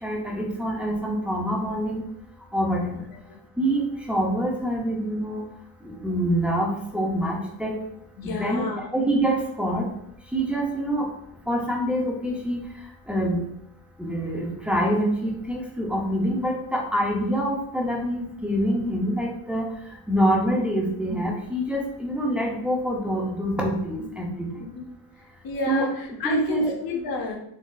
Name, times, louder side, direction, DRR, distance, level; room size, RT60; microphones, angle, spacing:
voice 1, 0.0-2.0 2.5-3.1 3.6-5.4 5.8-7.7 8.2-9.9 10.3-11.1 11.5-12.6 13.1-13.4 14.0-19.7 20.1-24.6 25.7-25.9 26.2-26.7, equal, 5° right, -2 dB, 0.5 m, -25 dB
voice 2, 8.2-8.8 24.8-24.9 25.4-27.4, left 3 dB, 45° left, 1 dB, 0.7 m, -30 dB
3.8 x 3.0 x 2.3 m, 0.75 s
cardioid pair, 140°, 48 cm